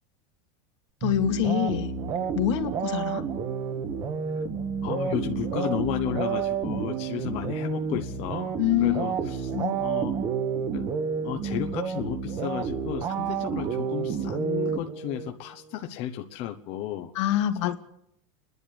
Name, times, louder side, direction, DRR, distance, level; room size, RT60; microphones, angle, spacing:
voice 1, 1.0-1.9 2.3-3.2 8.6-9.1 9.5-9.7 17.1-17.7, left 12 dB, 75° left, 6 dB, 2.6 m, -25 dB
sound 1, 1.0-15.3, right 6 dB, 25° right, 1.4 m, -30 dB
voice 2, 4.8-8.5 8.8-9.5 9.8-10.2 10.7-10.9 11.2-17.1 17.6-17.7, left 11 dB, 40° left, 5 dB, 1.1 m, -33 dB
28.5 x 11.0 x 8.6 m, 0.76 s
supercardioid pair, 165°, 15 cm